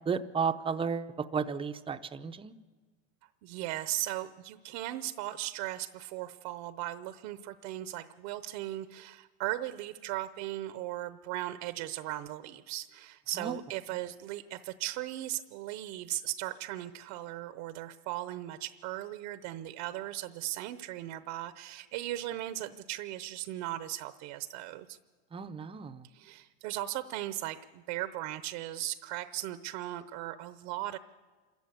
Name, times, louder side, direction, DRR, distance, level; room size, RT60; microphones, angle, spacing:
voice 1, 0.1-2.5 13.4-13.5 25.3-26.0, right 6 dB, 15° right, 9 dB, 0.7 m, -33 dB
voice 2, 3.4-25.0 26.0-31.0, right 15 dB, 65° right, 12 dB, 0.9 m, -37 dB
27.0 x 14.5 x 8.4 m, 1.5 s
supercardioid pair, 130°, 35 cm